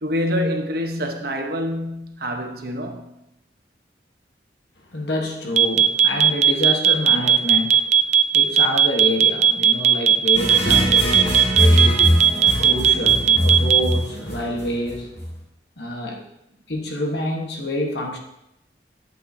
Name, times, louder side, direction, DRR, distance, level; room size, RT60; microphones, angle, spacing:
voice 1, 0.0-3.1, equal, 60° right, 1.1 m, -26 dB
voice 2, 4.9-7.9 8.3-12.2 12.6-15.1 15.8-16.2 16.7-18.2, left 1 dB, 70° left, 1.4 m, -27 dB
sound 1, 5.6-13.9, right 9 dB, 40° right, 0.4 m, -15 dB
sound 2, 10.3-15.4, equal, 35° left, 2.7 m, -21 dB
11.5 x 8.0 x 2.8 m
head